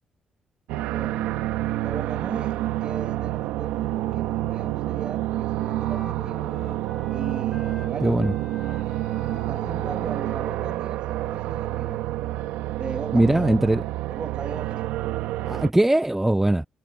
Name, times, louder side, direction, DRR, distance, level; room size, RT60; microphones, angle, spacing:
sound 1, 0.7-15.7, right 15 dB, 90° right, 1.3 m, -28 dB
voice 1, 0.9-1.4 1.8-6.6 7.1-8.3 8.6-8.8 9.3-12.1 12.8-13.6 14.1-14.9, right 5 dB, 40° right, 1.6 m, -37 dB
Wind instrument woodwind instrument, 3.0-7.9 8.2-13.5, left 2 dB, 15° left, 3.5 m, -46 dB
voice 2, 8.0-8.3 13.1-13.8 15.5-16.7, right 1 dB, 10° right, 0.4 m, -20 dB
supercardioid pair, 75°, 2 cm